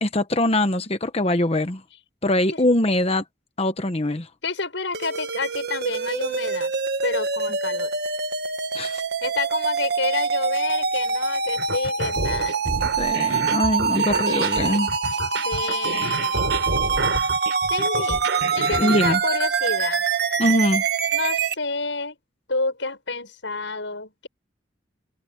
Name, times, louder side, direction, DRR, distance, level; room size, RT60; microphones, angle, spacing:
voice 1, 0.0-1.8 2.2-3.2 3.6-4.3 8.7-9.0 13.0-14.9 18.8-19.2 20.4-20.8, left 1 dB, 30° left, 1.1 m, -22 dB
voice 2, 4.4-6.7 7.0-7.9 9.2-12.8 15.3-16.5 17.7-18.2 18.5-20.0 21.1-22.2 22.5-24.3, left 3 dB, 75° left, 6.9 m, -29 dB
sound 1, 4.9-21.5, right 5 dB, 55° right, 1.7 m, -25 dB
sound 2, 11.6-19.2, right 2 dB, 80° right, 3.3 m, -29 dB
open air
head